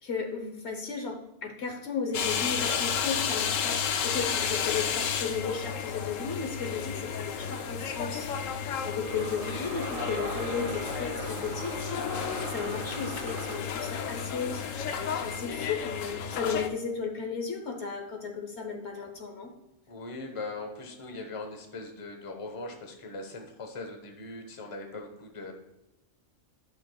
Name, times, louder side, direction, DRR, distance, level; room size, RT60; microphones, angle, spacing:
voice 1, 0.0-8.6 8.8-11.9 12.4-14.6 15.2-19.5, left 5 dB, 60° left, 3 dB, 1.1 m, -34 dB
sound 1, 2.1-16.7, left 7 dB, 85° left, 1.0 m, -32 dB
sound 2, 8.9-13.8, right 5 dB, 80° right, 1.1 m, -40 dB
voice 2, 19.9-25.5, left 3 dB, 25° left, 4 dB, 1.0 m, -40 dB
11.0 x 6.0 x 2.3 m, 0.96 s
omnidirectional pair, 1.3 m